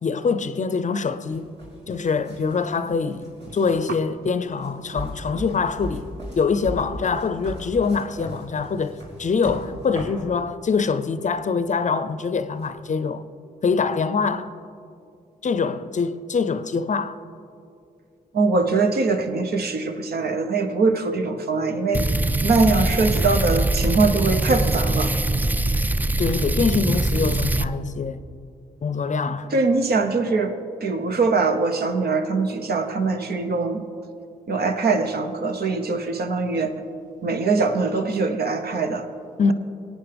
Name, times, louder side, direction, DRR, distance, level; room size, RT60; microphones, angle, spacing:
voice 1, 0.0-1.5 1.9-13.3 13.6-14.5 15.4-17.2 26.2-28.2 28.8-29.5 39.4-39.5, left 5 dB, 45° left, 0.6 m, -24 dB
sound 1, 1.3-10.2 11.2-11.4 12.6-12.7, equal, 80° right, 3.3 m, -37 dB
voice 2, 18.3-22.0 22.4-25.1 29.5-30.5 30.8-33.9 34.5-36.8 37.2-39.1, right 3 dB, 65° right, 0.9 m, -22 dB
sound 2, 21.9-27.7, right 2 dB, 10° right, 0.4 m, -22 dB
18.5 x 8.9 x 3.4 m
supercardioid pair, 45°, 18 cm